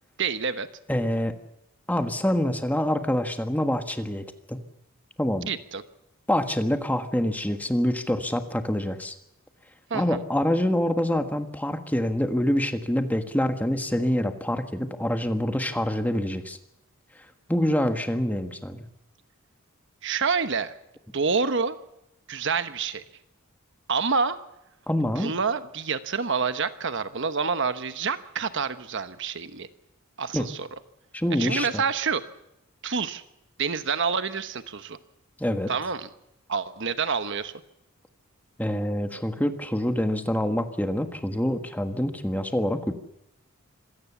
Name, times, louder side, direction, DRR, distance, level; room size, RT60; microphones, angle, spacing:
voice 1, 0.2-0.7 5.4-5.8 9.9-10.2 20.0-20.7 21.1-21.8 22.3-23.0 23.9-24.4 25.2-29.7 30.2-30.7 31.4-32.2 32.8-33.2 33.6-35.0 35.7-36.1 36.5-37.5, right 5 dB, 55° right, 11 dB, 1.1 m, -27 dB
voice 2, 0.9-1.3 1.9-4.6 5.2-5.5 6.3-9.1 9.9-16.6 17.5-18.9 24.9-25.3 30.3-30.5 31.1-31.8 35.4-35.7 38.6-42.9, left 1 dB, 10° left, 7 dB, 1.5 m, -26 dB
25.5 x 17.5 x 7.1 m, 0.84 s
head